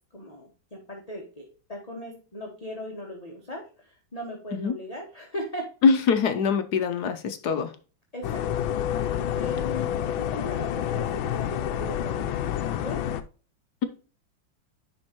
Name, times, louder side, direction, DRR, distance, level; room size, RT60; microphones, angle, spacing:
voice 1, 0.1-3.6 4.1-5.7 8.1-8.4 9.3-13.0, left 1 dB, 20° left, -1 dB, 1.4 m, -38 dB
voice 2, 5.8-7.7, left 5 dB, 65° left, 8 dB, 1.2 m, -23 dB
sound 1, 8.2-13.2, left 10 dB, 85° left, 1.4 m, -28 dB
10.5 x 4.3 x 3.0 m, 0.36 s
omnidirectional pair, 2.1 m